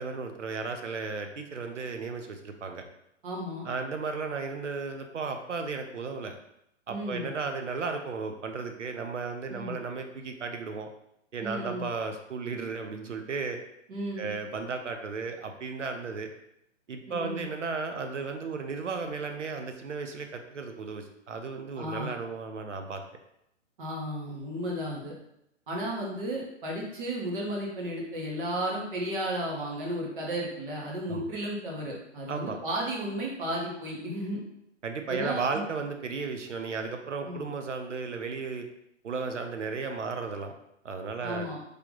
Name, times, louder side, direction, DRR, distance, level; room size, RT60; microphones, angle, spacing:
voice 1, 0.0-2.8 3.6-6.3 6.9-10.9 11.3-13.6 14.2-16.3 16.9-23.0 31.1-31.2 32.3-32.6 34.8-38.7 39.0-40.5 40.8-41.5, right 4 dB, 80° right, 5 dB, 0.7 m, -34 dB
voice 2, 3.2-3.7 6.9-7.3 9.5-9.7 11.4-11.9 13.9-14.3 17.1-17.4 21.8-22.1 23.8-25.1 25.7-34.4 35.1-35.6 37.2-37.4 41.2-41.6, right 1 dB, 45° right, -2 dB, 1.3 m, -34 dB
3.4 x 2.9 x 3.7 m, 0.78 s
figure-of-eight pair, 125°, 36 cm